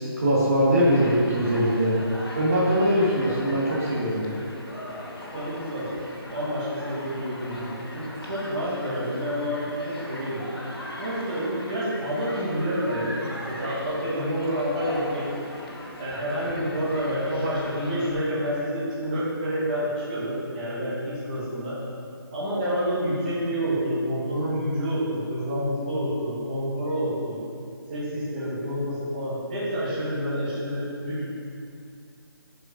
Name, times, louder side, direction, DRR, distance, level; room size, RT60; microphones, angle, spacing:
voice 1, 0.0-1.9 2.3-4.3, equal, 40° right, -6 dB, 1.4 m, -22 dB
Human group actions, 0.8-18.1, left 1 dB, 75° left, 2.0 m, -39 dB
voice 2, 5.3-5.9 6.3-10.4 11.0-13.2 13.4-15.2 16.0-21.7 22.3-27.4 27.9-31.2, equal, 20° right, -10 dB, 1.5 m, -28 dB
7.8 x 5.3 x 5.0 m, 2.4 s
hypercardioid pair, 175°, 13 cm